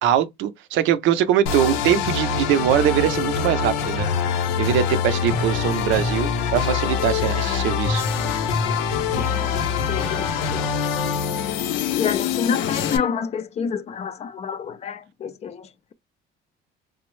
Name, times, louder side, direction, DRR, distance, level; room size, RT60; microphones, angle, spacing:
voice 1, 0.0-4.1 4.3-8.0, right 10 dB, 70° right, 0.6 m, -22 dB
sound 1, 1.5-13.0, left 6 dB, 90° left, 0.7 m, -24 dB
voice 2, 8.9-9.6 9.9-10.8 11.7-15.9, left 7 dB, 30° left, 0.4 m, -29 dB
3.4 x 2.0 x 3.1 m
cardioid pair, 140°, 20 cm